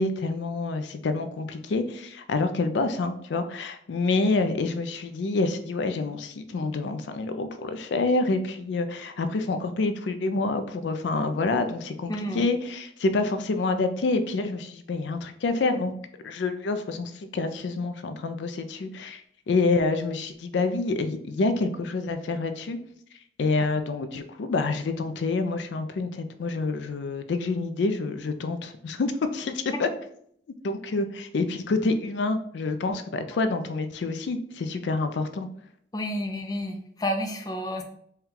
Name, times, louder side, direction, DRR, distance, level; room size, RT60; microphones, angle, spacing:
voice 1, 0.0-15.9 16.2-19.2 19.5-22.8 23.4-29.9 30.6-35.5, left 3 dB, 80° left, 8 dB, 0.4 m, -27 dB
voice 2, 12.1-12.4 35.9-37.8, equal, 20° left, 3 dB, 0.4 m, -30 dB
4.3 x 2.2 x 3.7 m, 0.67 s
head